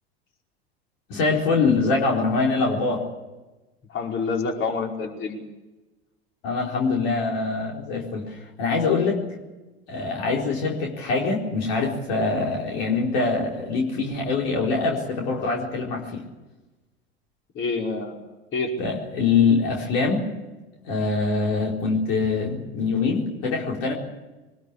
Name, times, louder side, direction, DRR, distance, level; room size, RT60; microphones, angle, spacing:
voice 1, 1.1-3.0 6.4-9.2 9.9-16.2 18.8-20.3 20.8-23.9, left 4 dB, 60° left, -1 dB, 4.4 m, -24 dB
voice 2, 3.9-5.4 17.5-18.2 18.5-18.7, left 4 dB, 40° left, 1 dB, 5.2 m, -27 dB
23.0 x 21.0 x 8.5 m, 1.1 s
hypercardioid pair, 80°, 31 cm